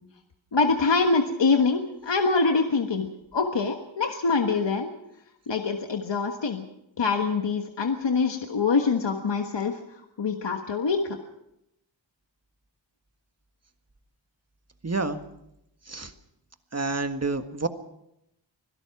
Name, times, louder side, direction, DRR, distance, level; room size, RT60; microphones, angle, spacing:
voice 1, 0.5-3.1 3.3-4.9 5.5-6.6 7.0-9.8 10.2-11.2, left 4 dB, 70° left, 4 dB, 1.5 m, -24 dB
voice 2, 14.8-15.2 15.9-16.1 16.7-17.7, right 3 dB, 35° right, 8 dB, 1.6 m, -28 dB
25.5 x 17.0 x 6.0 m, 0.83 s
wide cardioid pair, 85°, 45 cm